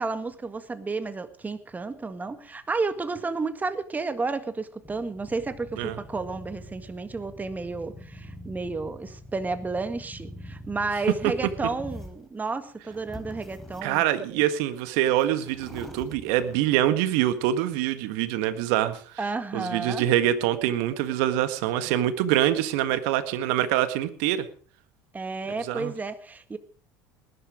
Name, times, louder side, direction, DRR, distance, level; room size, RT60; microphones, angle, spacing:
voice 1, 0.0-14.0 14.3-14.4 19.2-20.1 25.1-26.6, right 3 dB, 20° right, 10 dB, 1.9 m, -31 dB
sound 1, 4.8-12.2 12.8-14.2 14.8-14.9 15.2-16.8, left 1 dB, ahead, 3.8 m, -44 dB
voice 2, 13.8-19.2 19.5-24.5 25.6-25.9, right 12 dB, 65° right, 11 dB, 1.7 m, -25 dB
19.5 x 11.5 x 5.1 m, 0.42 s
hypercardioid pair, 70°, 9 cm